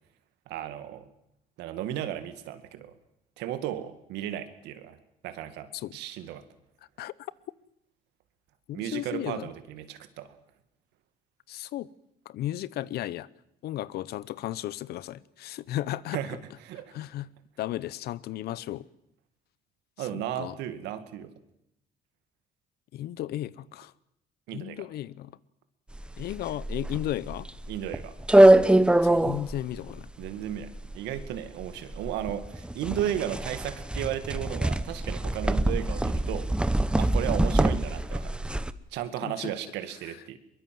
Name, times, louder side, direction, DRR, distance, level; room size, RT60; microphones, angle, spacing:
voice 1, 0.5-1.1 1.6-2.9 3.4-5.0 5.2-6.4 8.7-10.3 16.1-16.4 16.6-16.9 20.0-21.3 24.5-24.9 27.7-28.1 30.2-36.5 37.0-38.3 38.9-40.4, right 11 dB, 90° right, 2.2 m, -34 dB
voice 2, 8.7-9.5 11.5-11.9 12.3-13.3 13.6-16.2 16.9-17.3 17.6-18.9 20.0-20.6 22.9-23.9 24.5-25.4 26.2-27.5 29.0-30.1 39.2-39.5, left 13 dB, 70° left, 0.9 m, -34 dB
sound 1, 25.9-38.7, right 1 dB, 5° right, 0.9 m, -24 dB
23.0 x 22.0 x 7.8 m
cardioid pair, 110°, 17 cm